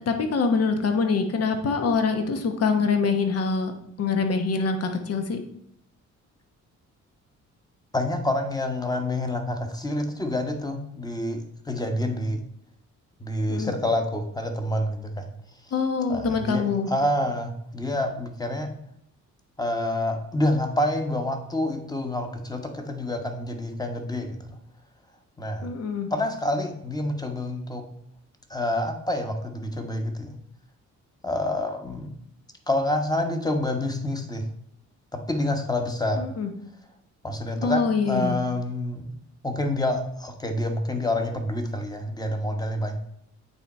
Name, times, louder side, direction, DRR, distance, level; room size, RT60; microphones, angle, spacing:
voice 1, 0.0-3.7 4.0-5.4 13.5-13.7 15.7-16.9 25.6-26.1 36.1-36.5 37.6-38.4, left 4 dB, 55° left, 6 dB, 1.1 m, -24 dB
voice 2, 7.9-12.4 13.2-15.3 16.1-18.7 19.6-24.6 25.4-25.7 26.1-27.9 28.5-30.4 31.2-32.1 32.7-34.4 35.1-36.3 37.2-39.1 39.4-43.0, left 1 dB, 15° left, 5 dB, 1.2 m, -27 dB
8.6 x 3.6 x 4.3 m, 0.71 s
cardioid pair, 90°, 30 cm